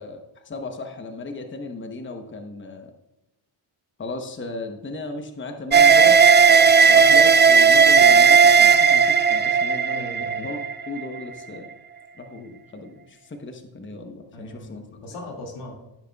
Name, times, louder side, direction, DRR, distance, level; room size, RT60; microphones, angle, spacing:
voice 1, 0.0-2.9 4.0-6.2 6.9-11.7 12.2-14.8, left 2 dB, 25° left, 5 dB, 1.0 m, -36 dB
sound 1, 5.7-11.1, right 6 dB, 25° right, 0.4 m, -15 dB
voice 2, 9.9-10.5 14.3-15.7, left 1 dB, 80° left, 0 dB, 2.4 m, -39 dB
15.5 x 6.6 x 2.4 m, 0.96 s
cardioid pair, 85°, 49 cm